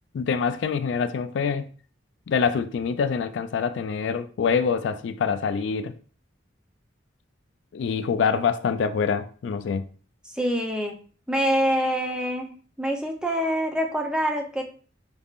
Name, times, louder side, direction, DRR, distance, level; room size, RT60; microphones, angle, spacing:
voice 1, 0.1-1.7 2.3-5.9 7.7-9.9, left 6 dB, 70° left, 0.3 m, -25 dB
voice 2, 10.3-11.0 11.3-12.5 12.8-14.6, equal, 5° right, 0.6 m, -25 dB
5.2 x 3.5 x 2.4 m
head